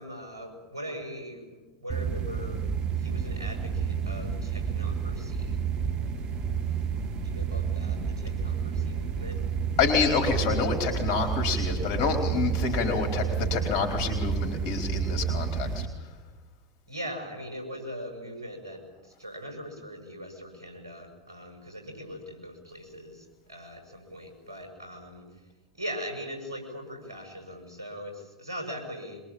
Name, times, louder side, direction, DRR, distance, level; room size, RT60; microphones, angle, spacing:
voice 1, 0.0-2.6 3.0-5.6 7.2-9.4 16.9-25.3 25.7-29.2, equal, 80° right, 4 dB, 7.4 m, -40 dB
sound 1, 1.9-15.8, right 6 dB, 45° right, 2.4 m, -30 dB
voice 2, 9.8-15.9, left 5 dB, 50° left, 5 dB, 4.4 m, -27 dB
24.0 x 22.0 x 8.9 m, 1.2 s
figure-of-eight pair, 85°, 2 cm